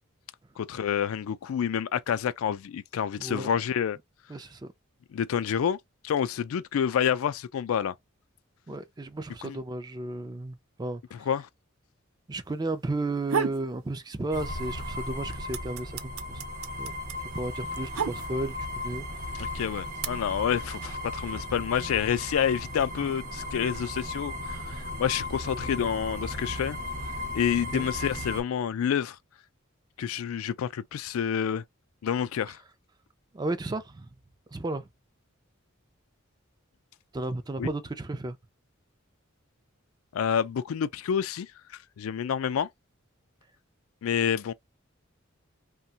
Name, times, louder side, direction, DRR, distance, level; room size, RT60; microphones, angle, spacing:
voice 1, 0.6-4.0 5.1-5.8 6.0-7.9 9.4-9.6 11.1-11.5 19.4-24.6 25.0-26.8 27.3-29.2 30.0-31.6 32.0-32.6 37.6-37.7 40.1-41.5 42.0-42.7 44.0-44.5, left 8 dB, 80° left, 0.3 m, -28 dB
voice 2, 3.2-3.5 4.3-4.7 8.7-11.0 12.3-15.9 16.3-16.4 16.8-16.9 17.3-18.6 18.8-19.0 27.7-27.9 33.3-34.1 34.5-34.8 37.1-38.4, right 2 dB, 20° right, 0.4 m, -33 dB
sound 1, 13.0-13.7 14.1-14.8 15.0-18.7 19.4-20.0, right 6 dB, 85° right, 0.5 m, -32 dB
sound 2, 14.3-28.4, left 1 dB, 40° right, 1.0 m, -36 dB
2.8 x 2.2 x 2.7 m
head